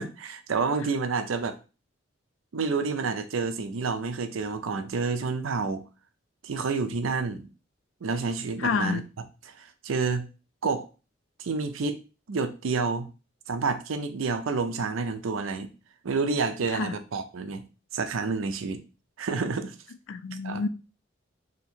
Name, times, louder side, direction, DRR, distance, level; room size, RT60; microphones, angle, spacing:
voice 1, 0.0-1.6 2.5-5.8 6.4-7.5 8.0-9.0 9.6-10.3 10.6-10.9 11.4-12.0 12.3-13.1 13.5-15.7 16.0-17.6 17.9-18.8 19.2-19.7 20.4-20.6, right 4 dB, 85° right, 0.5 m, -29 dB
voice 2, 8.6-9.0 16.7-17.0 20.1-20.7, left 5 dB, 80° left, 0.4 m, -28 dB
2.8 x 2.8 x 4.2 m
head